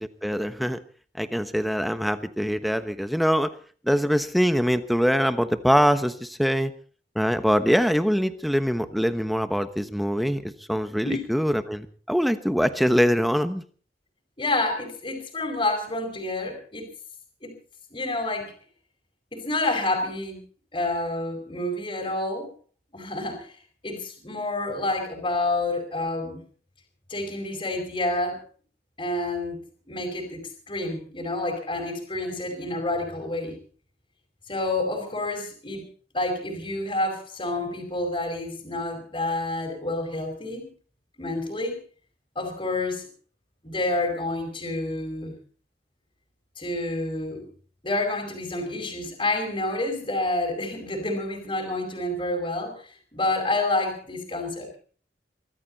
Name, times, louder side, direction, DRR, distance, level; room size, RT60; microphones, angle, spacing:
voice 1, 0.2-0.8 1.2-3.5 3.8-6.7 7.1-13.6, equal, ahead, 10 dB, 1.1 m, -23 dB
voice 2, 14.4-16.9 17.4-17.6 17.9-18.5 19.3-20.4 20.7-22.5 22.9-23.5 23.8-26.4 27.1-28.4 29.0-29.6 29.9-33.6 34.5-35.8 36.1-40.7 41.2-41.8 42.3-43.1 43.6-45.3 46.6-47.5 47.8-54.7, left 2 dB, 30° left, 2 dB, 4.9 m, -28 dB
23.0 x 14.0 x 4.1 m, 0.41 s
head